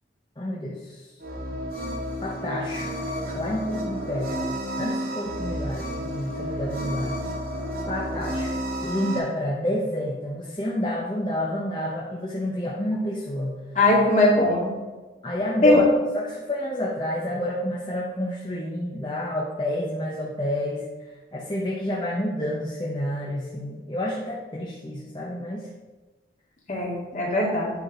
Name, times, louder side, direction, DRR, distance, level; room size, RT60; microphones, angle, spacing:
voice 1, 0.4-1.0 2.2-2.9 3.2-4.4 4.8-7.2 7.9-8.5 8.8-13.6 15.2-15.8 16.1-20.8 21.3-25.7, left 1 dB, 25° left, -3 dB, 0.9 m, -29 dB
sound 1, 1.2-9.2, equal, 50° right, 1.5 m, -31 dB
voice 2, 13.8-14.7 15.6-15.8 26.7-27.7, left 1 dB, 40° left, -3 dB, 2.2 m, -20 dB
9.6 x 4.6 x 5.1 m, 1.2 s
head